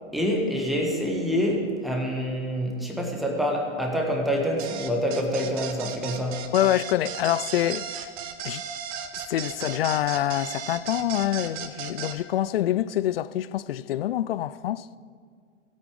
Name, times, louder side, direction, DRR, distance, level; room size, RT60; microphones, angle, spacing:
voice 1, 0.1-6.5, equal, ahead, 1.5 m, -26 dB
sound 1, 4.6-12.2, right 8 dB, 25° right, 0.7 m, -35 dB
voice 2, 6.5-8.1 8.4-8.6 9.3-14.9, left 12 dB, 50° left, 0.4 m, -26 dB
17.0 x 8.6 x 5.0 m
hypercardioid pair, 120°, 38 cm